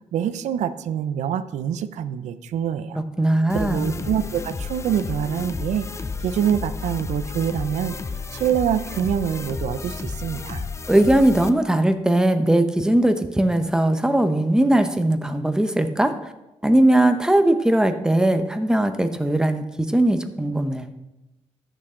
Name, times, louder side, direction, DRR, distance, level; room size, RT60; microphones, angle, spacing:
voice 1, 0.1-3.0 3.5-5.9 6.2-8.0 8.3-10.7, right 9 dB, 80° right, 13 dB, 0.6 m, -25 dB
voice 2, 3.0-3.9 10.9-16.1 16.6-20.9, right 1 dB, 5° right, 8 dB, 0.9 m, -19 dB
sound 1, 3.5-11.5, left 4 dB, 25° left, 0.6 m, -32 dB
13.5 x 6.5 x 3.8 m, 0.96 s
cardioid pair, 100°, 12 cm